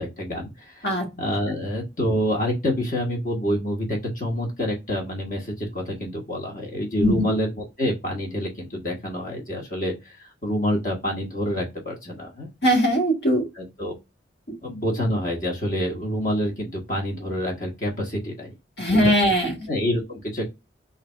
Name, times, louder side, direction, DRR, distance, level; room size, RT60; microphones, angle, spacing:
voice 1, 0.0-0.9 1.2-10.2 10.4-12.5 13.6-13.9 14.6-18.5 18.9-19.0 19.7-20.5, equal, 45° left, -1 dB, 1.2 m, -27 dB
voice 2, 12.6-13.4 18.8-19.7, equal, 70° left, 1 dB, 1.8 m, -20 dB
3.3 x 2.6 x 4.3 m, 0.23 s
head